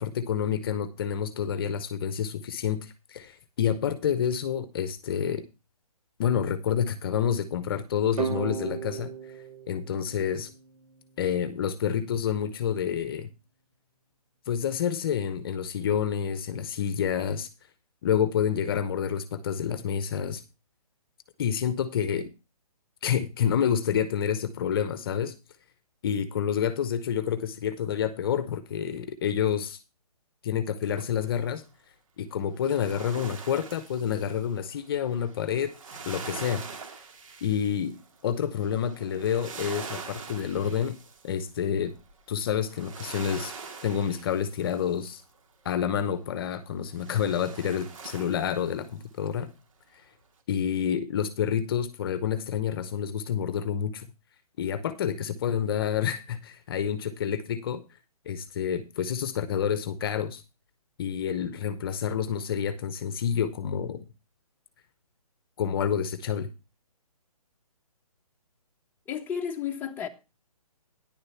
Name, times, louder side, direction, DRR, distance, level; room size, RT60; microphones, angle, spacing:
voice 1, 0.0-5.4 6.2-9.1 9.7-10.5 11.2-13.3 14.5-17.5 18.0-20.4 21.4-22.3 23.0-25.3 26.0-29.8 30.4-31.6 32.2-35.7 36.0-36.6 37.4-37.9 38.2-41.0 41.2-41.9 42.3-43.5 43.8-45.2 45.6-49.5 50.5-54.1 54.6-57.8 58.3-60.4 61.0-64.0 65.6-66.5, left 8 dB, 35° left, 0.9 m, -28 dB
sound 1, 8.2-11.0, right 7 dB, 75° right, 1.9 m, -35 dB
sound 2, 30.8-31.5 32.5-45.4 46.9-49.1 49.4-49.5, right 5 dB, 55° right, 2.5 m, -44 dB
voice 2, 69.1-70.1, left 8 dB, 10° left, 1.0 m, -32 dB
10.5 x 6.6 x 5.7 m
hypercardioid pair, 150°, 20 cm